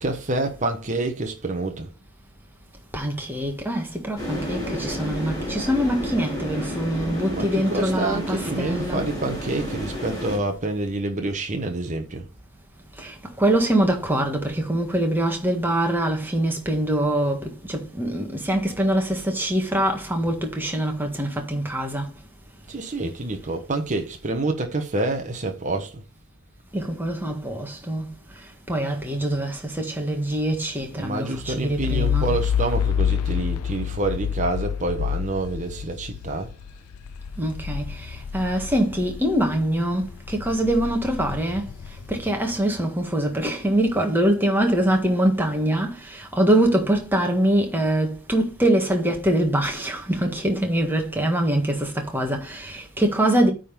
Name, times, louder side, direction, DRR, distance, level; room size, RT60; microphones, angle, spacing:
voice 1, 0.0-1.9 7.3-12.3 22.7-26.0 30.9-36.5, right 2 dB, 35° right, 1.0 m, -27 dB
voice 2, 2.9-9.0 13.0-22.1 26.7-32.3 37.4-41.7 42.1-53.5, right 1 dB, 10° right, 1.6 m, -24 dB
sound 1, 4.2-10.4, equal, 15° left, 4.6 m, -31 dB
sound 2, 31.4-39.6 40.0-42.6, left 8 dB, 75° left, 0.5 m, -28 dB
9.2 x 3.9 x 5.2 m
head